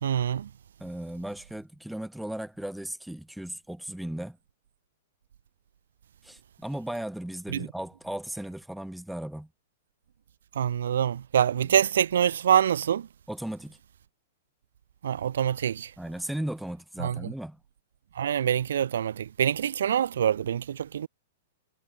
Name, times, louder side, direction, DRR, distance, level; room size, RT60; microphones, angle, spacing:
voice 1, 0.0-0.5 7.5-7.7 10.5-13.1 15.0-15.9 17.0-17.2 18.2-21.1, right 9 dB, 75° right, 1.6 m, -25 dB
voice 2, 0.8-4.4 6.2-9.5 13.3-13.8 16.0-17.6, right 1 dB, ahead, 2.8 m, -36 dB
supercardioid pair, 175°, 0 cm